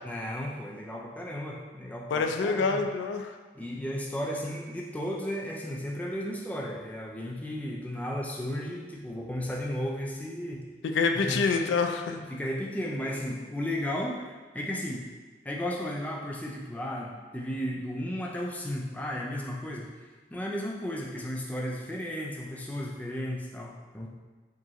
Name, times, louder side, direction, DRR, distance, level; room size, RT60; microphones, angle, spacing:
voice 1, 0.0-2.8 3.5-10.6 11.1-11.4 12.1-15.1 15.4-24.1, equal, 10° left, -2 dB, 0.3 m, -34 dB
voice 2, 2.1-3.3 10.8-12.2, left 4 dB, 85° left, 5 dB, 0.3 m, -26 dB
4.7 x 2.5 x 2.9 m, 1.3 s
head